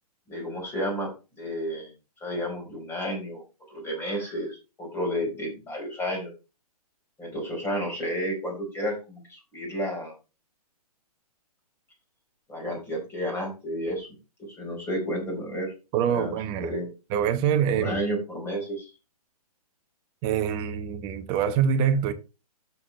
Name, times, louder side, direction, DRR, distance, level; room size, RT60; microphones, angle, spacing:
voice 1, 0.3-1.1 1.4-1.9 2.2-3.4 3.7-6.3 7.2-10.1 12.5-14.2 14.5-15.7 16.1-16.3 16.6-16.9 17.7-18.9, equal, 10° left, 4.6 m, -31 dB
voice 2, 15.9-16.7 17.1-18.0 20.2-22.1, right 8 dB, 25° right, 1.1 m, -25 dB
12.5 x 7.2 x 3.2 m
figure-of-eight pair, 125°, 20 cm